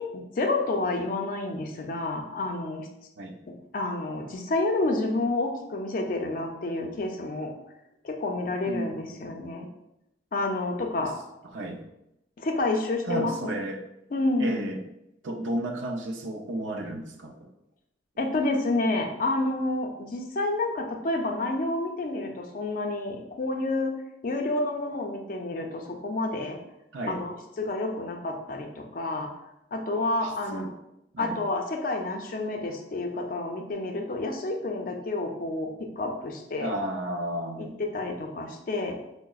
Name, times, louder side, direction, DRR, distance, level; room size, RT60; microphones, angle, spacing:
voice 1, 0.0-2.9 3.7-7.5 8.0-9.7 10.3-11.2 12.4-13.5 14.1-14.6 18.2-23.9 24.2-26.6 27.1-29.3 29.7-30.7 31.2-36.7 37.6-39.0, left 2 dB, 45° left, 3 dB, 0.4 m, -29 dB
voice 2, 8.6-9.2 11.0-11.1 11.4-11.8 13.0-13.8 14.4-14.8 15.2-17.5 26.9-27.2 30.2-30.7 31.1-31.4 36.6-37.9, right 1 dB, 90° right, 4 dB, 0.5 m, -33 dB
4.6 x 2.0 x 2.3 m, 0.86 s
head